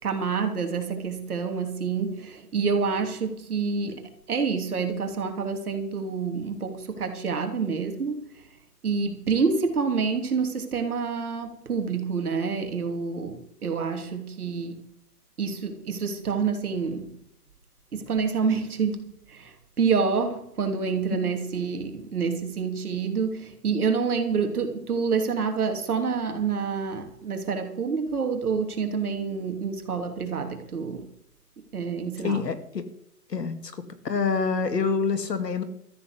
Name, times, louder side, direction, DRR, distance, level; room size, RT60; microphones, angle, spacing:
voice 1, 0.0-8.3 8.8-14.8 15.4-17.1 17.9-31.1 31.7-32.5, right 5 dB, 65° right, 5 dB, 3.1 m, -28 dB
voice 2, 32.2-32.8 33.3-33.7 34.0-35.6, left 5 dB, 85° left, 9 dB, 2.3 m, -26 dB
13.5 x 7.7 x 8.2 m, 0.74 s
hypercardioid pair, 165°, 48 cm